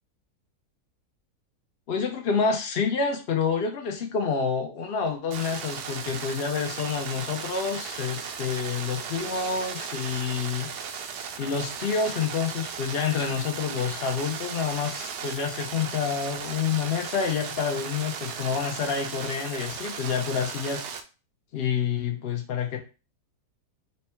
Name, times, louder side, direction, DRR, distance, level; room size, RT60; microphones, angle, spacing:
voice 1, 1.9-10.7 11.4-20.8 21.5-22.8, left 6 dB, 65° left, 2 dB, 0.6 m, -28 dB
sound 1, 5.3-21.0, right 6 dB, 75° right, 1.1 m, -36 dB
4.3 x 2.2 x 4.3 m, 0.32 s
omnidirectional pair, 1.8 m